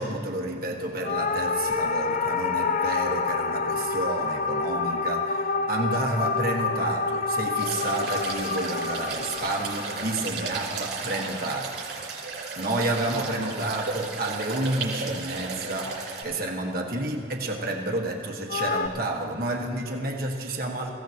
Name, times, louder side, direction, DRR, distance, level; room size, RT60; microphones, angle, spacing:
voice 1, 0.0-12.3 12.6-20.9, right 1 dB, 50° right, -1 dB, 1.4 m, -30 dB
sound 1, 1.0-11.5 18.5-18.9, left 4 dB, 40° left, 0.4 m, -28 dB
sound 2, 7.6-16.2, right 4 dB, 65° right, 5.2 m, -34 dB
28.0 x 16.0 x 2.9 m, 2.3 s
head